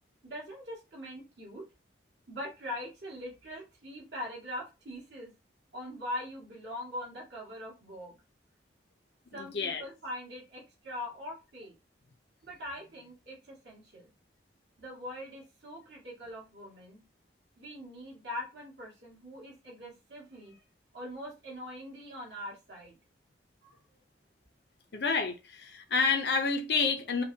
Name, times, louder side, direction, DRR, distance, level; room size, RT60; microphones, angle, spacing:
voice 1, 0.2-1.6 2.3-5.3 5.7-8.2 9.3-11.7 12.4-14.1 14.8-17.0 17.6-20.6 20.9-23.0 23.6-24.0, left 1 dB, 70° right, 2.2 m, -42 dB
voice 2, 9.3-9.8 24.9-27.2, left 4 dB, 65° left, 0.6 m, -29 dB
5.2 x 2.3 x 2.8 m
head